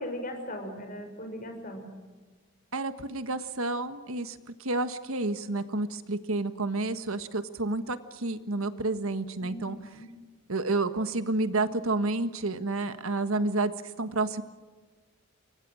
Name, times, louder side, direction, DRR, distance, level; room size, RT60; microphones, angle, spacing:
voice 1, 0.0-1.9 9.4-10.1, left 1 dB, 40° left, 5 dB, 5.9 m, -38 dB
voice 2, 2.7-9.8 10.5-13.7 14.0-14.4, right 2 dB, 80° right, 11 dB, 1.5 m, -30 dB
29.0 x 24.0 x 6.4 m, 1.3 s
head